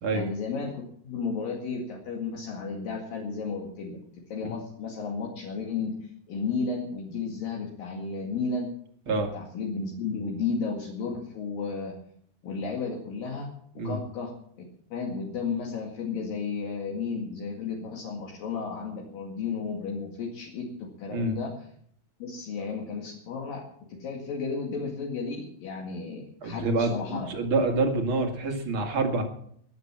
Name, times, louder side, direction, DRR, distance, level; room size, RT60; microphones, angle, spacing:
voice 1, 0.1-4.0 4.3-5.9 6.3-8.7 9.1-12.0 12.4-13.5 13.8-14.3 14.9-21.5 22.2-23.6 23.9-27.3, left 5 dB, 65° left, -1 dB, 3.7 m, -33 dB
voice 2, 26.4-29.2, right 3 dB, 40° right, 4 dB, 2.4 m, -27 dB
21.0 x 8.1 x 7.4 m, 0.64 s
omnidirectional pair, 4.5 m